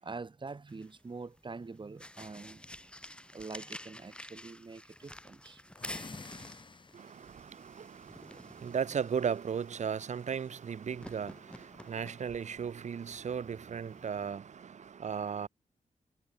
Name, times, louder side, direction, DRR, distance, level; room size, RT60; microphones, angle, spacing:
voice 1, 0.0-2.7 3.3-5.6, right 4 dB, 35° right, 4.4 m, -45 dB
sound 1, 0.7-14.3, left 1 dB, 5° left, 1.2 m, -51 dB
sound 2, 5.7-7.3, left 4 dB, 35° left, 4.2 m, -48 dB
voice 2, 6.9-15.5, right 7 dB, 60° right, 0.8 m, -36 dB
wide cardioid pair, 100°, 13 cm